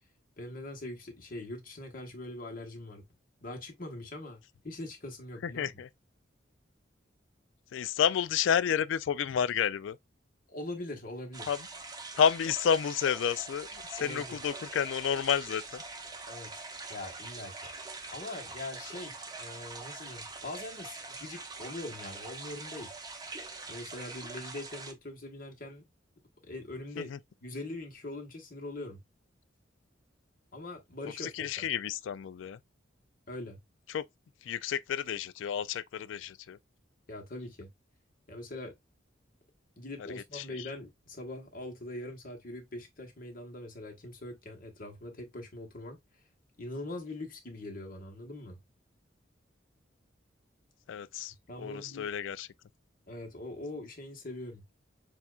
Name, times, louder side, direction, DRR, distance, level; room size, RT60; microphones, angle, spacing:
voice 1, 0.4-3.0 3.4-5.8 10.5-11.6 14.0-14.4 16.3-16.6 16.9-17.5 18.1-22.9 23.7-25.8 26.4-27.1 27.4-29.0 30.5-31.6 33.3-33.6 37.1-37.7 38.3-38.7 39.8-46.0 46.6-48.6 51.5-52.1 53.1-54.6, left 2 dB, 50° left, 1.3 m, -42 dB
voice 2, 5.4-5.9 7.7-10.0 11.5-11.6 12.1-15.8 27.0-27.2 31.2-32.6 33.9-34.0 34.4-36.6 40.3-40.7 50.9-52.5, left 8 dB, 80° left, 0.3 m, -30 dB
sound 1, 11.3-24.9, right 3 dB, 20° right, 0.7 m, -44 dB
7.0 x 2.4 x 2.4 m
head